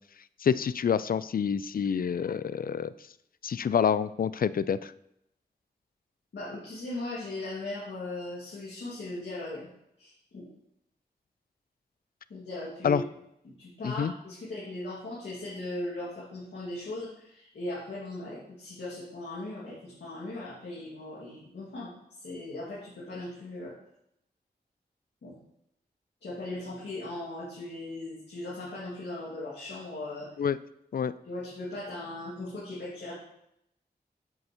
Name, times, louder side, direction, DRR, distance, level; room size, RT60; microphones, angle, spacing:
voice 1, 0.4-2.9 3.4-4.9 12.8-13.0 13.8-14.1 30.4-30.6 30.9-31.1, left 7 dB, 55° left, 16 dB, 0.4 m, -27 dB
voice 2, 6.3-9.7 10.0-10.5 12.3-13.0 13.4-21.9 22.2-23.7 25.2-25.4 26.2-30.3 31.2-33.1, left 2 dB, 90° left, -9 dB, 2.1 m, -38 dB
7.9 x 7.5 x 3.0 m, 0.78 s
cardioid pair, 45°, 18 cm